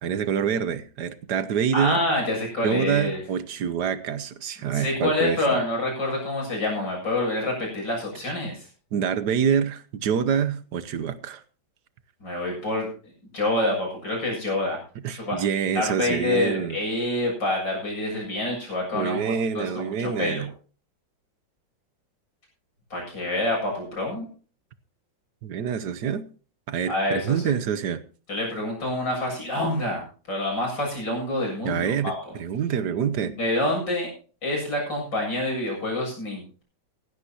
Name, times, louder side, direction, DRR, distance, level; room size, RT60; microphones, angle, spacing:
voice 1, 0.0-2.0 2.6-5.5 8.9-11.4 15.0-16.8 18.9-20.5 25.4-26.3 26.7-28.0 31.6-33.3, right 8 dB, 65° right, 1.3 m, -26 dB
voice 2, 1.7-3.2 4.7-8.7 12.2-12.9 13.3-14.8 15.1-15.4 15.7-20.4 22.9-24.3 26.9-27.5 28.3-30.0 30.3-32.1 33.2-34.1 34.4-36.6, left 1 dB, 70° left, 8.1 m, -27 dB
16.0 x 15.5 x 2.9 m
omnidirectional pair, 2.0 m